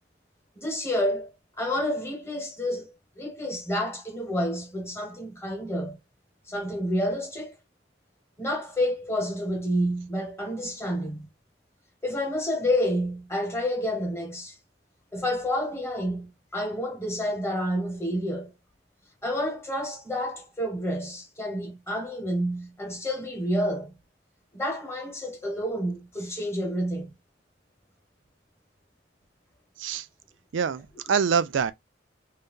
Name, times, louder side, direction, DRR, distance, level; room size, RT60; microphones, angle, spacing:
voice 1, 0.5-1.3 1.6-6.0 6.5-7.5 8.4-11.3 12.0-14.5 15.1-18.5 19.2-23.9 24.5-27.1, equal, 15° left, 1.3 m, -29 dB
voice 2, 30.5-31.7, right 6 dB, 85° right, 0.4 m, -25 dB
2.7 x 2.3 x 3.6 m
head